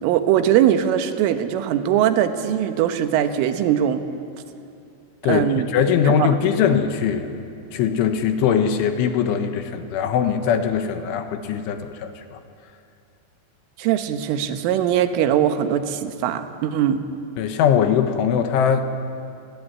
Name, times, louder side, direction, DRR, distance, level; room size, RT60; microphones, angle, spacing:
voice 1, 0.0-4.0 5.3-5.7 6.1-6.3 13.8-17.1, right 10 dB, 80° right, 8 dB, 3.8 m, -21 dB
voice 2, 5.2-7.3 7.7-12.4 17.4-18.9, left 7 dB, 80° left, 7 dB, 3.7 m, -21 dB
28.5 x 20.0 x 9.8 m, 2.5 s
omnidirectional pair, 5.7 m